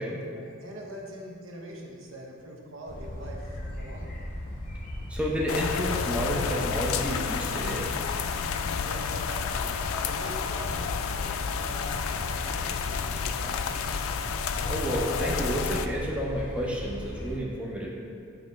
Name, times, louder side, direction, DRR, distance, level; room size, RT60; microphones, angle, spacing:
voice 1, 0.3-4.2 8.5-14.0, equal, 75° right, -1 dB, 0.9 m, -43 dB
sound 1, 2.9-17.4, left 1 dB, 40° left, 0.8 m, -38 dB
voice 2, 5.1-7.9 14.6-17.9, equal, 5° right, -4 dB, 0.6 m, -30 dB
sound 2, 5.5-15.9, left 6 dB, 85° left, 0.3 m, -31 dB
7.3 x 3.0 x 5.1 m, 2.3 s
head